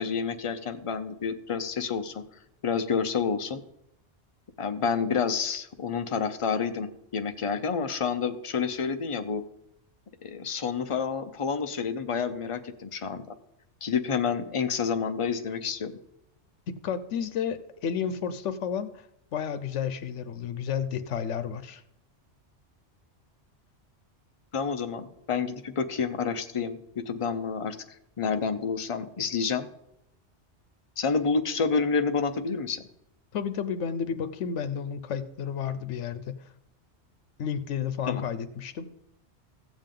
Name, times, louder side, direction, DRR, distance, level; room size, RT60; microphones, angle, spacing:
voice 1, 0.0-2.2 2.6-3.6 4.6-9.4 10.2-13.3 13.8-15.9 24.5-27.8 28.2-29.7 31.0-32.8 38.1-38.2, left 5 dB, 35° left, 7 dB, 0.6 m, -29 dB
voice 2, 16.8-19.0 19.3-21.8 33.3-36.4 37.4-38.9, left 7 dB, 90° left, 11 dB, 1.0 m, -31 dB
15.0 x 7.2 x 3.8 m, 0.79 s
omnidirectional pair, 1.2 m